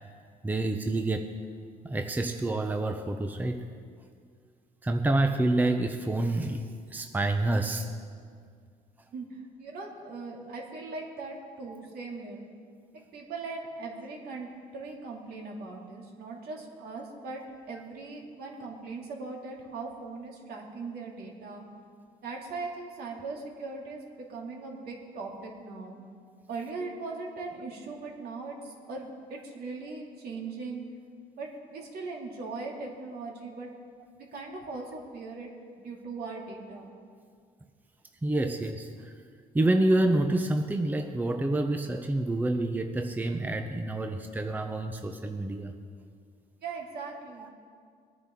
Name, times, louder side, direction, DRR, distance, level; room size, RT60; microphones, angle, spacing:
voice 1, 0.4-1.3 1.8-3.7 4.8-6.6 6.9-7.9 38.2-39.1 39.5-45.7 47.4-47.5, right 2 dB, 10° right, 6 dB, 0.7 m, -28 dB
voice 2, 9.1-12.4 12.9-17.4 17.7-21.6 22.2-26.0 26.5-30.8 31.4-33.7 34.2-36.9 46.6-47.5, right 3 dB, 65° right, -1 dB, 2.6 m, -39 dB
21.0 x 9.6 x 3.7 m, 2.1 s
cardioid pair, 110°, 17 cm